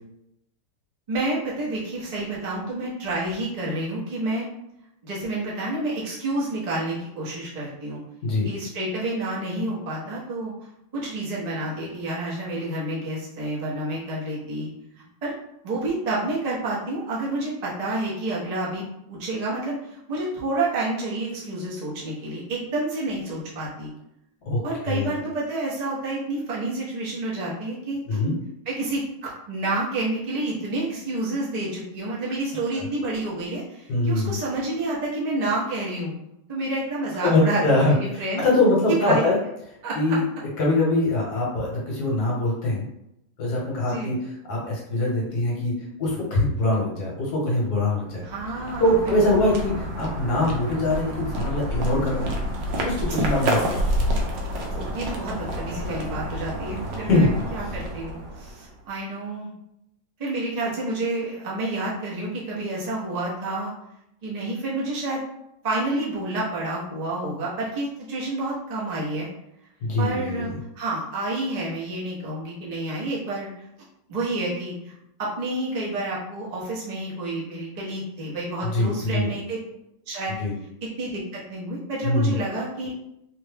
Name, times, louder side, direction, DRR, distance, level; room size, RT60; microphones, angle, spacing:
voice 1, 1.1-4.5 5.0-8.0 8.4-10.5 10.9-14.7 15.2-15.3 15.6-23.9 24.6-28.2 28.7-36.1 36.5-38.4 38.9-39.3 39.8-40.0 43.9-44.1 48.2-49.0 49.3-49.4 53.5-53.7 54.7-59.5 60.2-63.7 64.2-65.2 65.6-69.3 70.0-70.5 70.7-73.5 74.1-74.9 75.2-79.6 80.1-80.3 81.0-82.9, right 2 dB, 40° right, -6 dB, 0.5 m, -29 dB
voice 2, 33.9-34.4 37.2-39.4 39.9-40.2 40.6-42.8 43.4-44.2 44.5-45.7 46.0-48.2 48.8-52.3 52.8-53.8 57.1-57.3 69.8-70.6 78.6-79.3 80.4-80.5 82.0-82.4, left 2 dB, 60° left, -3 dB, 1.4 m, -23 dB
sound 1, 48.1-58.8, equal, 75° right, 1.3 m, -29 dB
3.4 x 2.1 x 3.3 m, 0.81 s
omnidirectional pair, 2.1 m